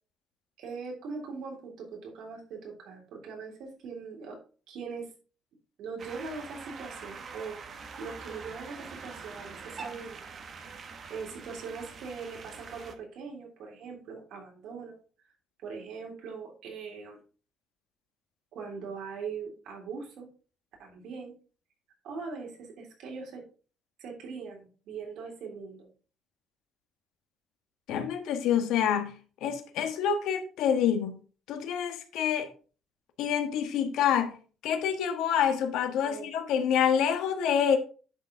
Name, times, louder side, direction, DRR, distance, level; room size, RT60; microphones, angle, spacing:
voice 1, 0.6-4.4 4.7-5.1 5.8-7.6 8.0-10.2 11.1-15.0 15.6-17.2 18.5-20.3 20.8-21.3 22.0-23.4 24.0-25.9 36.0-36.3, right 5 dB, 70° right, 3.3 m, -41 dB
sound 1, 6.0-12.9, right 5 dB, 40° right, 1.0 m, -44 dB
voice 2, 27.9-29.1 29.4-31.1 31.5-32.5 33.2-34.3 34.6-37.8, left 8 dB, 80° left, 1.4 m, -27 dB
10.5 x 4.8 x 3.9 m
cardioid pair, 135°, 0 cm